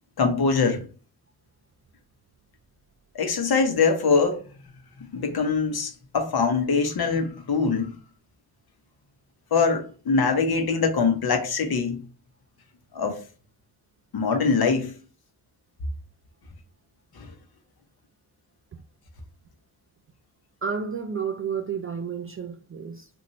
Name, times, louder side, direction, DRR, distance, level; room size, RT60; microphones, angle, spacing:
voice 1, 0.2-0.8 3.1-4.4 5.1-7.9 9.5-12.0 12.9-13.2 14.1-14.9 17.2-17.3, left 4 dB, 50° left, 0.9 m, -23 dB
voice 2, 20.6-23.1, right 6 dB, 30° right, 0.4 m, -31 dB
3.0 x 2.6 x 2.7 m
supercardioid pair, 40°, 49 cm